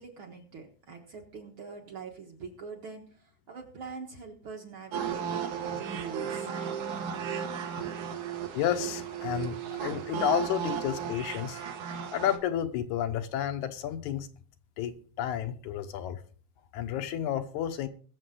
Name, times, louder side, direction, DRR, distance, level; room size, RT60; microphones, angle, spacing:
voice 1, 0.0-3.0 3.5-6.5, right 5 dB, 50° right, 1.8 m, -43 dB
sound 1, 4.9-12.4, right 8 dB, 70° right, 2.6 m, -35 dB
voice 2, 8.5-11.6 12.1-14.3 14.8-16.2 16.7-17.9, left 10 dB, 75° left, 2.2 m, -31 dB
20.5 x 7.1 x 3.8 m
omnidirectional pair, 3.6 m